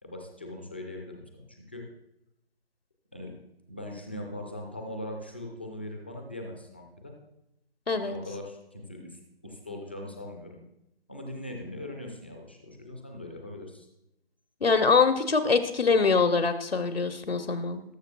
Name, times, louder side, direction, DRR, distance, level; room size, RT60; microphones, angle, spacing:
voice 1, 0.0-1.8 3.1-3.3 3.7-7.1 8.0-10.6 11.1-13.9, left 1 dB, 10° left, 2 dB, 0.5 m, -40 dB
voice 2, 14.6-17.8, left 4 dB, 75° left, 7 dB, 1.1 m, -24 dB
19.5 x 6.6 x 2.3 m, 0.85 s
figure-of-eight pair, 150°, 30 cm